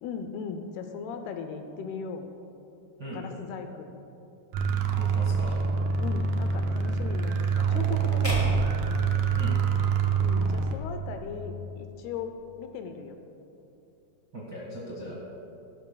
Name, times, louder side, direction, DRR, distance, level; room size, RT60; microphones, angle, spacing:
voice 1, 0.0-2.3 3.1-3.9 6.0-8.6 10.2-12.3 12.6-13.2 15.0-15.1, left 5 dB, 80° left, 6 dB, 2.5 m, -38 dB
sound 1, 4.5-10.8, right 5 dB, 75° right, 2.0 m, -26 dB
voice 2, 5.0-5.6 9.4-9.5 14.3-15.1, right 1 dB, 55° right, -6 dB, 1.2 m, -39 dB
sound 2, 8.2-10.5, left 2 dB, 20° left, 1.0 m, -34 dB
17.0 x 13.0 x 2.3 m, 2.8 s
omnidirectional pair, 4.8 m